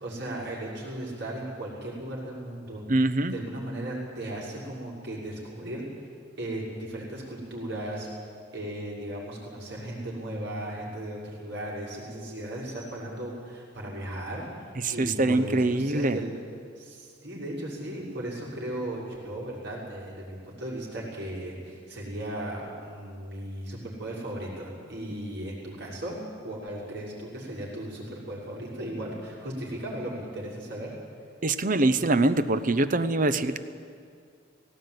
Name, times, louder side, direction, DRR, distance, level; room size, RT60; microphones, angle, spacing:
voice 1, 0.0-2.8 3.3-5.8 6.4-8.1 8.5-16.3 16.8-26.2 26.4-30.9, right 1 dB, 60° right, -5 dB, 6.3 m, -36 dB
voice 2, 2.9-3.3 14.8-16.2 31.4-33.6, right 2 dB, 45° right, 11 dB, 0.8 m, -24 dB
18.0 x 17.0 x 9.4 m, 2.2 s
head